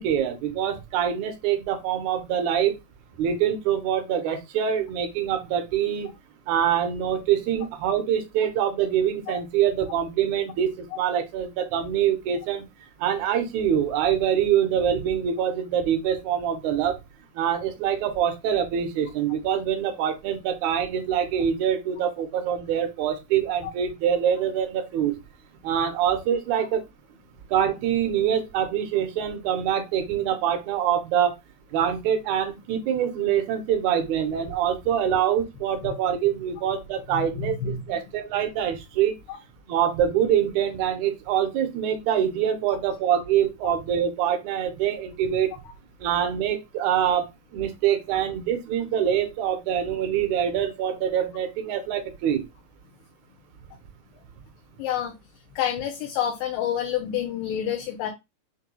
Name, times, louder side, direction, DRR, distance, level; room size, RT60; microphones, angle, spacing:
voice 1, 0.0-2.8 3.2-6.1 6.5-12.7 13.0-17.0 17.4-25.2 25.6-26.8 27.5-31.4 31.7-39.2 39.7-45.5 46.0-52.5, right 9 dB, 75° right, 1.9 m, -25 dB
voice 2, 37.1-37.8 39.3-39.4 43.6-43.7 54.8-55.1 55.5-58.1, left 9 dB, 90° left, 2.4 m, -28 dB
6.0 x 2.2 x 2.8 m
omnidirectional pair, 3.9 m